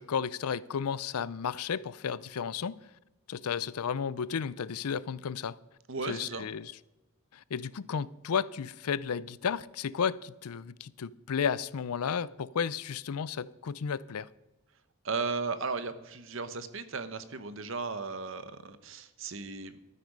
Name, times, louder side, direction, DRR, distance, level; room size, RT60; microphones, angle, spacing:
voice 1, 0.0-2.8 3.3-5.6 6.0-6.7 7.3-14.3, left 7 dB, 85° left, 0.5 m, -33 dB
voice 2, 5.9-6.5 15.0-19.8, right 4 dB, 60° right, 0.9 m, -36 dB
12.5 x 9.6 x 5.3 m
head